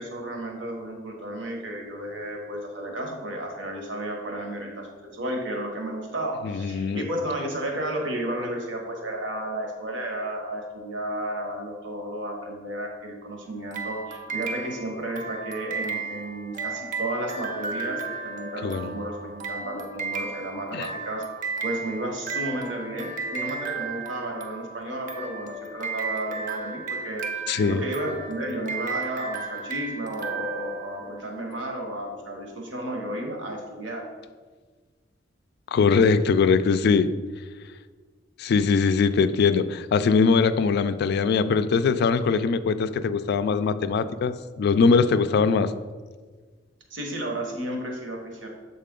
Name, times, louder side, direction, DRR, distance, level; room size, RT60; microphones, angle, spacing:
voice 1, 0.0-4.9 5.1-21.2 21.6-34.1 46.9-48.5, right 1 dB, 70° right, 1 dB, 1.1 m, -32 dB
voice 2, 6.4-7.1 18.6-18.9 20.7-20.9 27.5-27.8 35.7-37.1 38.4-45.7, left 5 dB, 55° left, 12 dB, 0.3 m, -21 dB
sound 1, 13.7-31.4, right 4 dB, 45° right, 0.5 m, -34 dB
7.4 x 4.1 x 3.7 m, 1.5 s
head